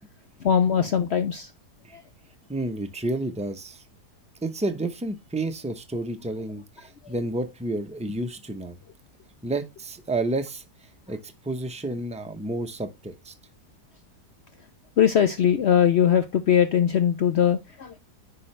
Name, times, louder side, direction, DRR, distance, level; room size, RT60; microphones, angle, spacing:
voice 1, 0.4-1.5 1.9-2.0 15.0-18.0, left 8 dB, 65° left, 0.6 m, -21 dB
voice 2, 2.5-3.8 4.4-8.8 9.4-13.3, right 2 dB, 10° right, 0.4 m, -30 dB
10.0 x 3.9 x 3.2 m
omnidirectional pair, 1.7 m